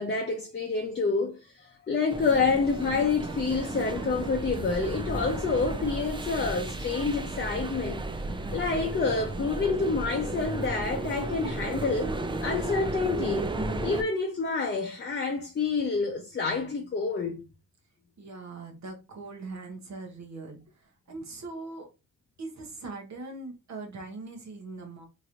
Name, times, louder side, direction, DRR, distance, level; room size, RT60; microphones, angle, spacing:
voice 1, 0.0-8.0 8.5-13.5 13.8-17.5, left 4 dB, 30° left, 0.7 m, -28 dB
sound 1, 2.1-14.0, right 2 dB, 15° right, 0.4 m, -34 dB
voice 2, 18.2-21.9 22.4-25.0, right 3 dB, 50° right, 0.9 m, -41 dB
3.0 x 3.0 x 2.5 m
supercardioid pair, 65°, 35 cm